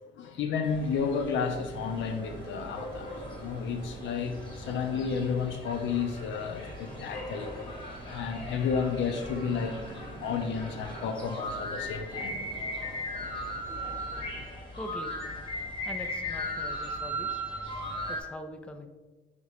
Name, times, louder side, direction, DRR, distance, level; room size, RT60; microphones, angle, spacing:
voice 1, 0.0-3.1 3.4-7.5 8.1-12.4, left 6 dB, 70° left, 7 dB, 0.5 m, -32 dB
sound 1, 0.6-18.2, left 1 dB, 25° left, 1.0 m, -38 dB
sound 2, 1.5-14.4, right 4 dB, 70° right, 0.6 m, -48 dB
voice 2, 14.8-15.1 15.8-17.4 18.1-18.9, left 1 dB, 5° left, 5 dB, 0.3 m, -42 dB
3.1 x 2.9 x 4.0 m, 1.2 s
cardioid pair, 90°, 20 cm